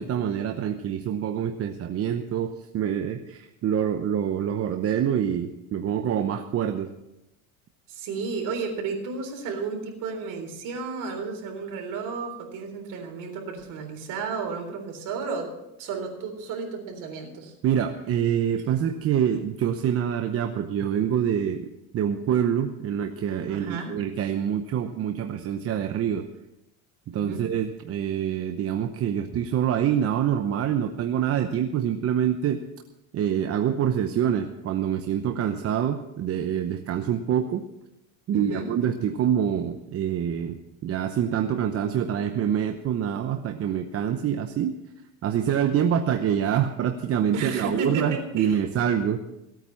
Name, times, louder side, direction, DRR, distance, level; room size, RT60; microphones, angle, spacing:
voice 1, 0.0-6.9 17.6-21.7 21.9-26.3 27.1-32.6 33.1-37.6 38.3-44.7 45.2-49.2, right 9 dB, 40° right, 6 dB, 0.9 m, -26 dB
voice 2, 7.9-15.5 15.8-17.5 23.4-23.9 27.1-27.5 38.3-38.7 47.3-48.6, right 4 dB, 60° right, 2 dB, 3.9 m, -33 dB
17.0 x 9.0 x 5.8 m, 0.91 s
cardioid pair, 125°, 35 cm